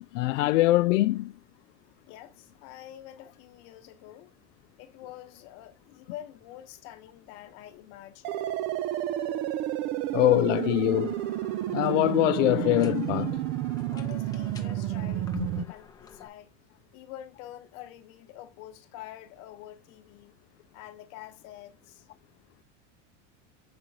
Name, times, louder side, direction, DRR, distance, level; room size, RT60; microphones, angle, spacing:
voice 1, 0.0-1.3 10.1-11.2 11.7-13.4 15.3-15.6, left 17 dB, 85° left, 0.6 m, -24 dB
voice 2, 2.1-4.3 4.8-8.5 13.9-16.5 16.9-20.3 20.7-22.1, left 12 dB, 45° left, 1.1 m, -46 dB
sound 1, 8.2-15.6, right 14 dB, 30° right, 0.4 m, -31 dB
sound 2, 10.9-16.3, left 5 dB, 10° left, 0.6 m, -51 dB
7.5 x 5.2 x 2.8 m
supercardioid pair, 165°, 36 cm